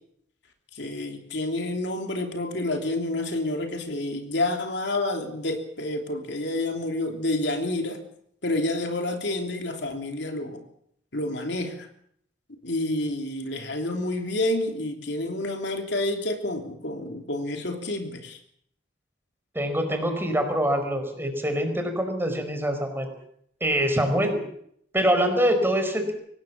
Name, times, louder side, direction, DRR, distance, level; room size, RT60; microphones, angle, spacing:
voice 1, 0.7-8.0 8.4-10.6 11.1-11.9 12.6-18.4, left 2 dB, 70° left, 4 dB, 3.1 m, -29 dB
voice 2, 19.5-23.1 23.6-24.4 24.9-26.1, equal, 15° right, 6 dB, 4.4 m, -24 dB
24.0 x 18.5 x 7.3 m, 0.70 s
head